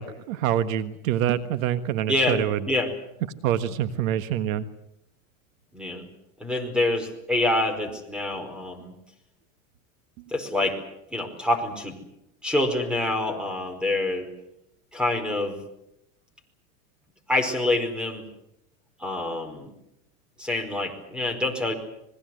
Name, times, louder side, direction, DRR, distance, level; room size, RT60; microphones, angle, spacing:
voice 1, 0.0-2.7 3.4-4.6, right 10 dB, 75° right, 12 dB, 1.6 m, -26 dB
voice 2, 2.1-2.4 2.7-2.9 5.7-6.0 6.4-8.9 10.3-10.8 11.1-12.0 12.4-14.3 14.9-15.6 17.3-18.2 19.0-19.7 20.4-21.7, left 2 dB, ahead, 7 dB, 4.8 m, -26 dB
26.5 x 21.0 x 7.9 m, 0.83 s
supercardioid pair, 130°, 41 cm